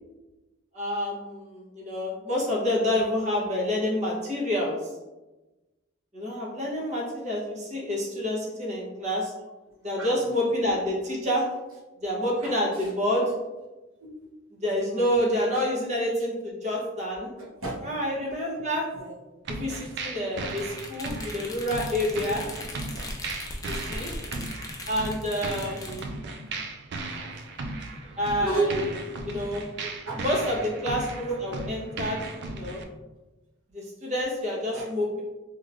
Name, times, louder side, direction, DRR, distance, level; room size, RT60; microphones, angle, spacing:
voice 1, 0.7-4.8 6.1-9.3 9.8-11.4 12.0-13.3 14.6-17.3 17.8-18.9 19.5-22.5 23.6-24.1 24.9-26.1 28.2-28.7 29.3-29.7 30.2-32.2 32.5-32.8 33.7-35.2, left 1 dB, 35° right, -3 dB, 0.9 m, -28 dB
voice 2, 12.4-12.9 14.0-14.1 14.7-15.2 17.4-17.9 18.6-18.7 18.9-19.2 19.8-19.9 26.4-26.5 27.0-27.2 28.0-29.5 29.8-30.2 31.2-31.4 34.7-34.9, right 2 dB, 90° right, -5 dB, 1.1 m, -33 dB
sound 1, 19.4-32.8, right 3 dB, 55° right, 0.4 m, -36 dB
sound 2, 20.5-26.0, left 2 dB, 15° left, 0.3 m, -39 dB
3.4 x 3.0 x 2.5 m, 1.1 s
head